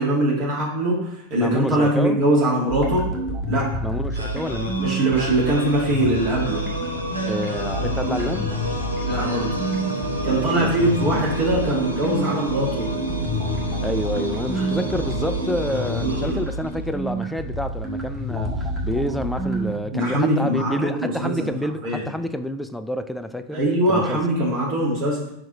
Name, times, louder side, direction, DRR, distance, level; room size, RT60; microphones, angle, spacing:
voice 1, 0.0-3.1 3.5-3.7 4.8-6.6 9.0-9.6 10.2-12.9 16.0-16.4 19.9-21.5 21.8-22.1 23.5-25.3, right 1 dB, 40° right, -5 dB, 2.2 m, -22 dB
voice 2, 1.4-2.2 3.8-4.9 7.3-8.5 10.3-10.7 13.8-23.6 23.9-24.2, left 1 dB, 5° left, 10 dB, 0.4 m, -28 dB
sound 1, 2.7-19.8, right 1 dB, 10° right, 1.5 m, -29 dB
sound 2, 4.1-17.1, right 1 dB, 85° right, 1.0 m, -30 dB
4.7 x 4.3 x 5.0 m, 0.76 s
figure-of-eight pair, 90°, 0 cm